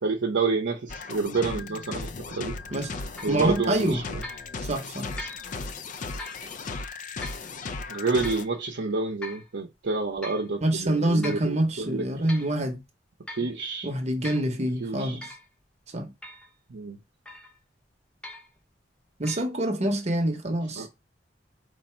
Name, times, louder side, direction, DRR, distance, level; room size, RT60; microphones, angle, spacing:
voice 1, 0.0-2.6 3.2-4.2 7.9-12.3 13.3-13.9 14.8-15.2 16.7-17.0 20.8-20.9, right 4 dB, 75° right, 0.7 m, -29 dB
sound 1, 0.9-8.5, left 3 dB, 45° left, 0.4 m, -36 dB
sound 2, 3.2-3.4 4.2-4.5 5.2-5.5 6.2-6.4 7.2-7.5 8.2-8.5 9.2-9.5 10.2-10.5 11.2-11.5 12.0-12.5 13.3-13.5 14.2-14.5 15.2-15.5 16.2-16.5 17.3-17.6 18.2-18.6 19.2-19.4, left 2 dB, 5° left, 0.6 m, -41 dB
voice 2, 3.3-4.0 4.6-5.1 10.6-12.8 13.8-15.3 15.9-16.1 19.2-20.9, right 1 dB, 40° right, 0.8 m, -26 dB
4.7 x 2.6 x 4.3 m
head